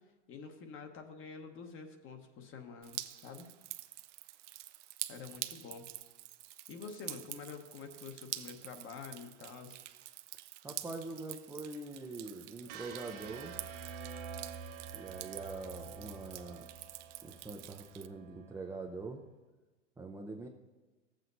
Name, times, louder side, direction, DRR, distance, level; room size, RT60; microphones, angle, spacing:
voice 1, 0.3-3.5 5.1-5.8 6.7-9.8, left 5 dB, 35° left, 6 dB, 1.1 m, -47 dB
Drip, 2.8-18.1, right 15 dB, 75° right, 0.6 m, -47 dB
voice 2, 10.6-13.6 14.9-16.6 17.2-19.2 20.0-20.5, right 3 dB, 5° right, 0 dB, 0.5 m, -44 dB
sound 1, 12.7-18.8, right 5 dB, 50° right, 1.4 m, -48 dB
14.5 x 7.7 x 2.6 m, 1.2 s
hypercardioid pair, 115°, 36 cm